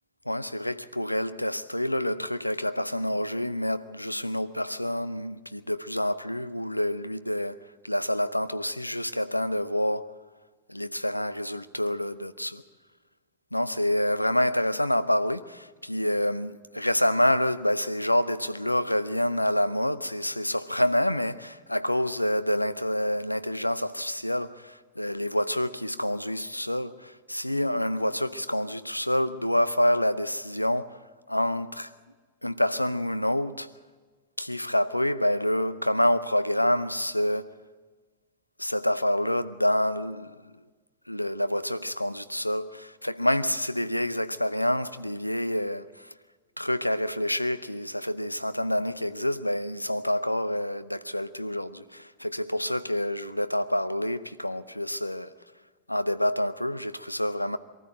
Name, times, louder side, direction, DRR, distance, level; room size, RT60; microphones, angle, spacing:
voice 1, 0.3-7.6 7.8-10.1 10.7-12.6 13.5-31.0 31.3-31.9 32.4-33.7 34.4-37.5 38.6-40.3 41.1-46.1 46.6-55.3 55.9-57.6, left 1 dB, 85° left, 0.6 m, -27 dB
23.0 x 13.5 x 8.8 m
figure-of-eight pair, 90°, 0 cm